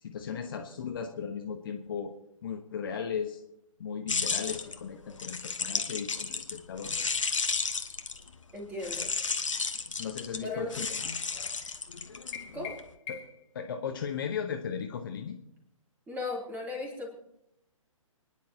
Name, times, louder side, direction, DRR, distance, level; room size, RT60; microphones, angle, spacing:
voice 1, 0.0-2.1 2.4-3.4 3.8-6.9 10.0-11.0 12.5-12.6 13.1-13.2 13.5-15.4, left 7 dB, 40° left, 4 dB, 1.2 m, -36 dB
sound 1, 4.1-8.3 8.8-12.8, left 4 dB, 65° left, 1.3 m, -33 dB
voice 2, 8.5-9.1 10.3-10.8 12.5-12.8 16.1-17.1, left 3 dB, 10° right, -1 dB, 3.2 m, -36 dB
sound 2, 12.3-13.5, left 8 dB, 20° left, 1.8 m, -43 dB
30.0 x 10.5 x 2.9 m, 0.81 s
figure-of-eight pair, 130°, 18 cm